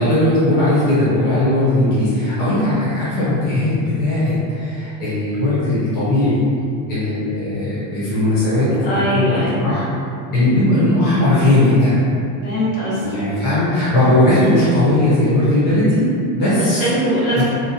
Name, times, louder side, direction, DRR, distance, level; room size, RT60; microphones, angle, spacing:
voice 1, 0.0-6.4 6.9-9.8 10.3-11.9 13.0-16.8 17.4-17.5, left 1 dB, 25° left, -12 dB, 0.7 m, -17 dB
voice 2, 8.8-9.6 12.4-13.5 16.5-17.4, equal, 55° left, -9 dB, 1.0 m, -21 dB
2.8 x 2.0 x 2.8 m, 2.5 s
cardioid pair, 170°, 40 cm